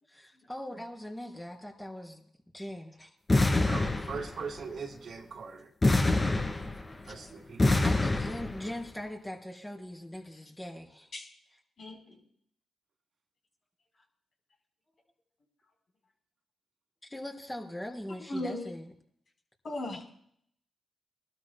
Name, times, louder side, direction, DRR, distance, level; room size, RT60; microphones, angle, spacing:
voice 1, 0.1-2.2 2.5-3.1 5.9-7.4 7.8-11.1 17.0-18.9, left 1 dB, 15° left, 2 dB, 3.3 m, -41 dB
sound 1, 3.3-4.6 5.8-7.1 7.6-8.7, left 2 dB, 35° left, 2.3 m, -26 dB
voice 2, 3.6-5.7 7.1-7.8, right 5 dB, 65° right, 3 dB, 2.3 m, -40 dB
voice 3, 11.8-12.2 18.3-18.7 19.6-20.1, left 1 dB, 60° left, 1 dB, 4.1 m, -37 dB
23.0 x 12.5 x 2.3 m, 0.67 s
supercardioid pair, 50°, 0 cm